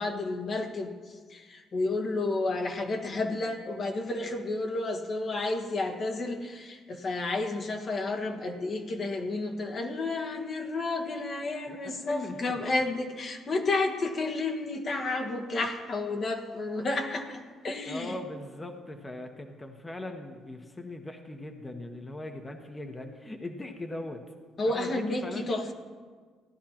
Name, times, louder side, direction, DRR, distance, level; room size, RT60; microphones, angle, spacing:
voice 1, 0.0-18.1 24.6-25.7, left 2 dB, 50° left, 3 dB, 1.3 m, -31 dB
voice 2, 11.7-12.6 17.9-24.2 24.7-25.5, left 1 dB, 20° left, 4 dB, 1.1 m, -40 dB
15.5 x 10.5 x 3.0 m, 1.5 s
hypercardioid pair, 55°, 0 cm